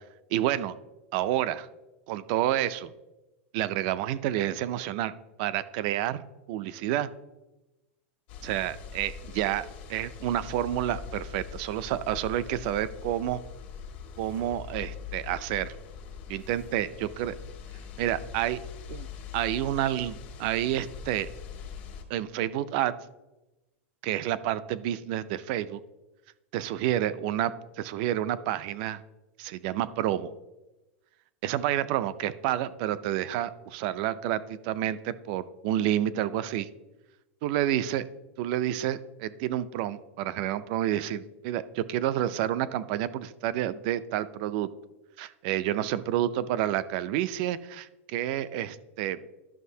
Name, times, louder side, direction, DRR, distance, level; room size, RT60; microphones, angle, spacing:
voice 1, 0.3-0.7 1.1-1.7 2.1-2.9 3.5-5.1 5.4-6.2 6.5-7.1 8.4-13.4 14.2-15.8 16.3-17.3 18.0-18.6 18.9-19.1 19.3-21.3 22.1-22.9 24.0-25.8 26.5-27.5 27.8-29.0 29.4-30.3 31.4-36.7 37.4-38.0 38.4-44.7 45.2-49.3, right 12 dB, 45° right, 14 dB, 0.4 m, -29 dB
sound 1, 8.3-22.0, left 7 dB, 50° left, 1.4 m, -42 dB
11.5 x 6.1 x 2.7 m, 1.0 s
supercardioid pair, 160°, 7 cm